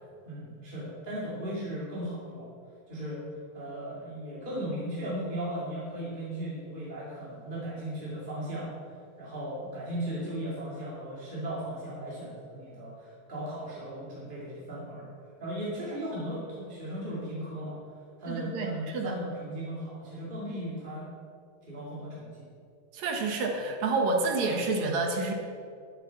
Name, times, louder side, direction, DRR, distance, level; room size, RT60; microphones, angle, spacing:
voice 1, 0.2-2.5 2.9-3.2 3.5-8.7 9.2-15.1 15.4-17.8 18.2-21.1 21.6-22.4, right 1 dB, 15° right, -8 dB, 2.3 m, -37 dB
voice 2, 18.3-19.1 22.9-25.3, right 3 dB, 65° right, 2 dB, 2.5 m, -29 dB
12.5 x 10.0 x 5.8 m, 2.3 s
omnidirectional pair, 3.5 m